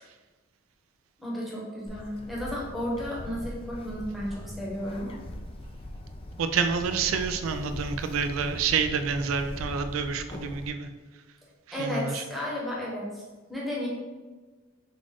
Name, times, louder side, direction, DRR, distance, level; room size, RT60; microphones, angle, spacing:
voice 1, 1.2-5.1 11.7-13.2 13.5-13.9, equal, ahead, -6 dB, 0.9 m, -33 dB
Bird, 1.9-10.7, left 1 dB, 25° left, 0.3 m, -40 dB
voice 2, 6.4-10.9 11.7-12.2, right 6 dB, 75° right, 8 dB, 0.3 m, -28 dB
3.7 x 2.4 x 3.6 m, 1.3 s
head